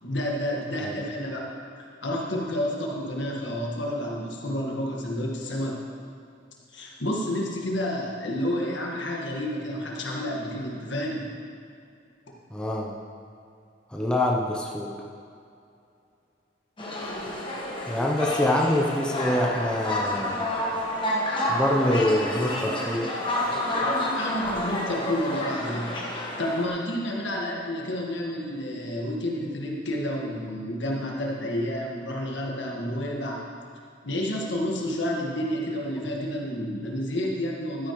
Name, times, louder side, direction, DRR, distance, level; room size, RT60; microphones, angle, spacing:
voice 1, 0.0-1.5 2.0-5.8 6.7-11.3 24.0-33.5 34.0-37.9, left 1 dB, 70° left, -2 dB, 1.6 m, -30 dB
voice 2, 12.5-12.9 13.9-14.9 17.0-17.1 17.9-20.5 21.5-23.1, left 1 dB, 5° left, -2 dB, 0.6 m, -25 dB
sound 1, 16.8-26.7, left 1 dB, 25° left, 1.3 m, -29 dB
12.5 x 9.8 x 3.1 m, 2.5 s
head